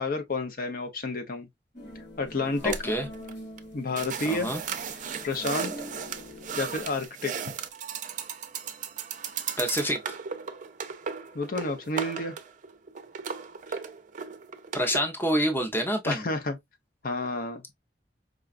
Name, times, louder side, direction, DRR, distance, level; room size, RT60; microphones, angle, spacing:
voice 1, 0.0-1.5 2.2-2.8 3.7-4.5 5.2-5.7 6.6-7.3 11.3-12.4 16.1-16.6 17.0-17.6, left 2 dB, 55° left, 0.6 m, -30 dB
sound 1, 1.7-7.1, left 1 dB, 85° left, 2.6 m, -44 dB
voice 2, 2.6-3.1 4.2-4.6 9.6-10.2 14.7-16.2, equal, 15° left, 0.6 m, -27 dB
sound 2, 2.7-3.3 3.6-3.7 4.0-15.0, right 7 dB, 45° right, 0.5 m, -36 dB
4.9 x 2.3 x 2.3 m
head